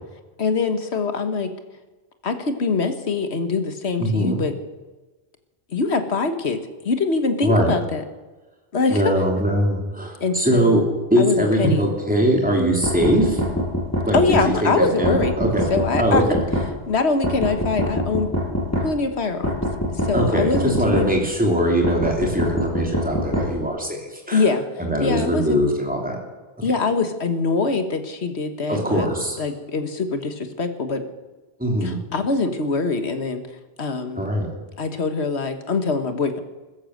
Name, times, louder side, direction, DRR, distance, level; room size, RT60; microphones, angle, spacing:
voice 1, 0.4-1.5 2.2-4.5 5.7-6.6 6.8-8.0 8.7-9.1 10.2-10.8 11.2-11.8 14.1-15.3 15.7-16.2 16.9-18.3 18.8-19.6 19.9-21.1 24.3-24.6 25.0-25.6 26.6-29.1 29.4-31.0 31.8-34.3 34.8-36.4, left 4 dB, 85° left, 8 dB, 1.7 m, -23 dB
voice 2, 4.0-4.4 7.4-7.7 8.9-10.8 11.1-13.4 14.1-14.2 14.6-15.6 16.0-16.4 20.1-24.0 24.3-24.4 24.8-26.2 28.7-29.4 31.6-32.0 34.2-34.5, equal, 10° right, 0 dB, 3.1 m, -21 dB
sound 1, 12.8-14.5 15.0-16.7 17.2-18.9 19.4-21.1 21.8-23.5, equal, 15° left, 5.7 m, -23 dB
16.0 x 14.0 x 6.6 m, 1.2 s
omnidirectional pair, 1.1 m